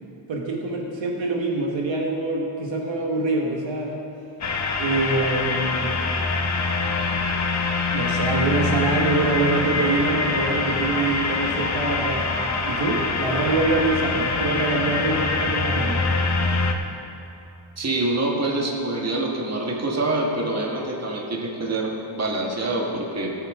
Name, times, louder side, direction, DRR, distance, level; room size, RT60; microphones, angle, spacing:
voice 1, 0.3-4.0 4.8-5.9 7.9-12.3 12.6-16.0, right 3 dB, 65° right, 0 dB, 1.4 m, -25 dB
sound 1, 4.4-16.7, left 3 dB, 35° left, 0.8 m, -24 dB
voice 2, 17.8-23.3, right 2 dB, 35° right, -1 dB, 1.5 m, -26 dB
17.0 x 8.3 x 3.6 m, 2.8 s
wide cardioid pair, 135°, 48 cm